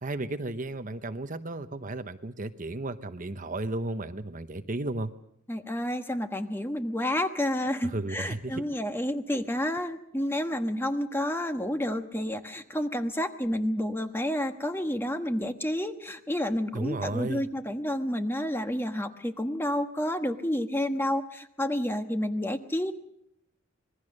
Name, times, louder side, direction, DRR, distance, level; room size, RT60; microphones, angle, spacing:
voice 1, 0.0-5.1 7.8-8.6 16.7-17.5, right 2 dB, 40° right, 10 dB, 0.9 m, -34 dB
voice 2, 5.5-22.9, left 1 dB, 10° left, 7 dB, 1.3 m, -30 dB
26.0 x 21.0 x 6.5 m, 0.74 s
head